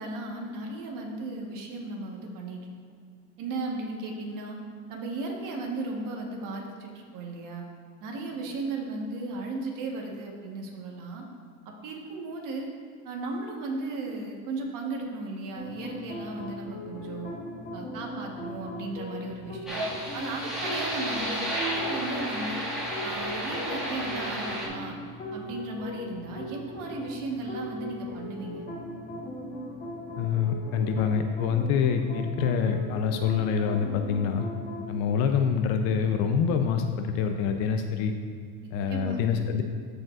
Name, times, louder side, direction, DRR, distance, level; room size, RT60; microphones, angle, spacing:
voice 1, 0.0-2.6 3.4-4.6 4.9-7.6 8.0-11.2 11.6-12.7 13.0-17.3 17.7-19.8 20.1-22.6 23.0-25.0 25.3-28.7 38.9-39.4, right 2 dB, 45° right, 0 dB, 1.4 m, -35 dB
sound 1, 15.6-35.0, left 1 dB, 20° left, 1.1 m, -39 dB
sound 2, 19.7-24.7, right 1 dB, ahead, 1.8 m, -32 dB
voice 2, 30.2-34.5 34.9-38.1 38.7-39.6, left 6 dB, 55° left, 6 dB, 0.6 m, -26 dB
13.5 x 5.1 x 2.5 m, 2.1 s
supercardioid pair, 140°, 44 cm